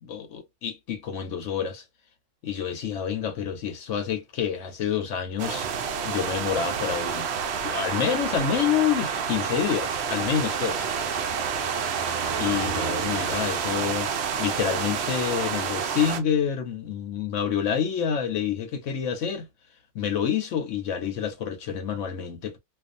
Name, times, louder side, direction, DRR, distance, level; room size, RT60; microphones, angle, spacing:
voice 1, 0.0-1.8 2.4-7.3 7.6-10.9 12.4-14.1 14.4-19.5 19.9-22.6, left 8 dB, 60° left, 0.9 m, -28 dB
Car passing by, 5.2-16.4, right 5 dB, 45° right, 0.9 m, -42 dB
sound 1, 5.4-16.2, right 7 dB, 70° right, 0.6 m, -29 dB
2.5 x 2.3 x 2.5 m
omnidirectional pair, 1.6 m